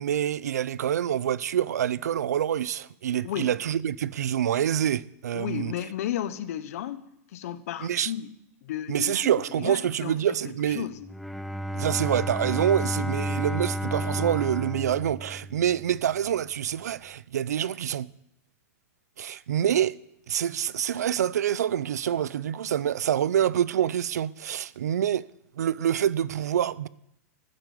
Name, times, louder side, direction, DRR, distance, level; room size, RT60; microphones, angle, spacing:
voice 1, 0.0-5.7 7.8-8.1 8.9-10.9 11.7-18.1 19.2-20.0 20.3-25.2 25.6-26.9, right 10 dB, 90° right, 0.6 m, -26 dB
voice 2, 5.3-7.0 7.3-8.3 8.6-9.1 9.6-10.2 10.7-11.1, left 11 dB, 65° left, 1.1 m, -33 dB
Bowed string instrument, 11.0-15.9, equal, ahead, 0.4 m, -31 dB
14.0 x 9.1 x 7.7 m
hypercardioid pair, 140°, 9 cm